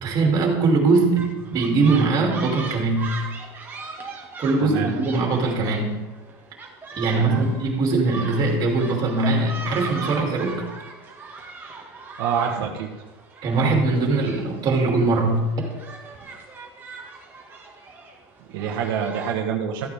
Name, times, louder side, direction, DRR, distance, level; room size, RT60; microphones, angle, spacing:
voice 1, 0.0-3.1 4.4-6.0 7.0-10.7 13.4-15.5, right 3 dB, 35° right, 0 dB, 2.9 m, -21 dB
sound 1, 1.2-19.3, right 4 dB, 15° right, 1.8 m, -39 dB
voice 2, 4.6-4.9 7.1-7.5 12.2-12.9 18.5-19.9, right 7 dB, 75° right, 0 dB, 1.4 m, -26 dB
14.0 x 9.0 x 3.6 m, 1.1 s
supercardioid pair, 145°, 12 cm